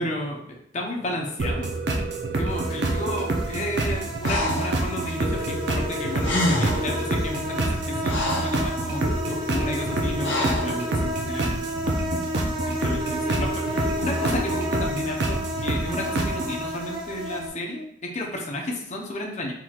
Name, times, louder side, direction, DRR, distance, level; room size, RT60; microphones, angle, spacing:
voice 1, 0.0-1.7 2.3-11.7 12.6-19.5, left 1 dB, 40° left, 0 dB, 0.7 m, -32 dB
sound 1, 1.4-16.6, right 2 dB, 60° right, 0.6 m, -27 dB
sound 2, 2.5-17.5, equal, 25° right, 0.8 m, -32 dB
Breathing, 4.2-4.8 5.9-6.0 6.2-6.9 7.6-8.6 10.2-10.7, left 1 dB, 75° left, 0.9 m, -26 dB
4.6 x 3.7 x 2.3 m, 0.69 s
head